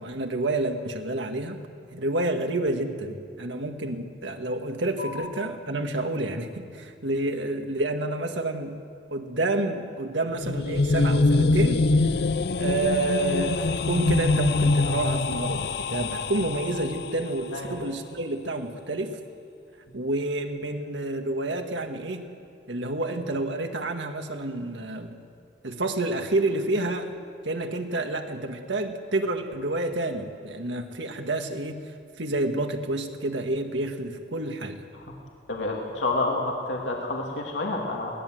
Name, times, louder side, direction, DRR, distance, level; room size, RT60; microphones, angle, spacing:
voice 1, 0.0-1.6 1.9-8.8 9.1-11.9 12.6-19.2 19.9-22.3 22.7-25.2 25.6-27.1 27.4-31.8 32.2-34.9, right 2 dB, 80° right, 5 dB, 1.9 m, -29 dB
sound 1, 10.3-17.3, left 3 dB, 60° left, 0.6 m, -24 dB
voice 2, 35.5-38.1, left 2 dB, 85° left, -1 dB, 2.5 m, -29 dB
22.0 x 18.5 x 7.9 m, 2.3 s
head